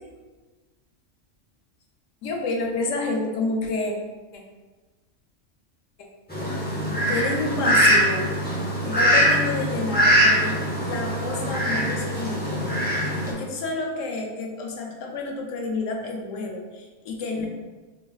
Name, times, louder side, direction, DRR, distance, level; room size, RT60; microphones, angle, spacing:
voice 1, 2.2-3.9 4.3-4.4 6.4-6.5 7.1-8.3 8.8-17.5, left 3 dB, 85° left, 1 dB, 1.0 m, -29 dB
Fowl, 6.3-13.3, equal, 10° left, 0.5 m, -22 dB
4.0 x 2.4 x 2.3 m, 1.3 s
omnidirectional pair, 1.3 m